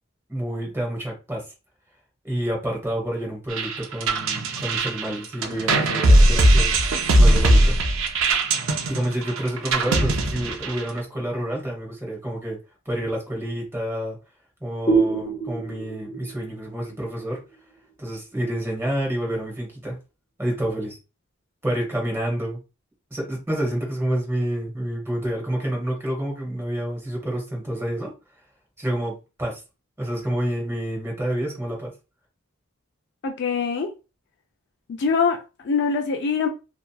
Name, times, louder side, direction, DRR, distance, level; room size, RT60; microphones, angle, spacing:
voice 1, 0.3-1.4 2.2-6.8 7.1-7.7 8.9-12.6 12.8-14.2 14.6-17.4 18.0-20.0 20.4-21.0 21.6-22.6 23.1-28.1 28.8-29.6 30.0-31.9, right 1 dB, 10° right, 1.1 m, -28 dB
sound 1, 3.5-11.0, right 1 dB, 65° right, 0.5 m, -19 dB
sound 2, 14.9-18.3, right 4 dB, 20° left, 0.7 m, -27 dB
voice 2, 33.2-33.9 34.9-36.5, left 5 dB, 55° left, 0.4 m, -23 dB
2.7 x 2.3 x 2.2 m
head